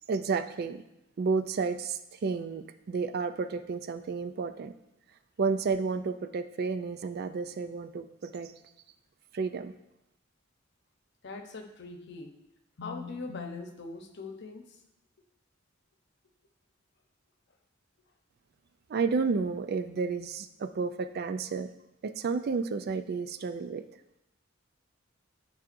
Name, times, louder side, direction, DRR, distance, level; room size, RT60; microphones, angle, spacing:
voice 1, 0.1-0.8 1.2-4.7 5.4-8.5 9.3-9.7 18.9-21.7 22.0-23.8, right 4 dB, 50° right, 11 dB, 0.4 m, -31 dB
voice 2, 11.2-12.3 12.8-14.8, left 4 dB, 60° left, 4 dB, 0.8 m, -41 dB
11.0 x 4.8 x 2.6 m, 0.87 s
head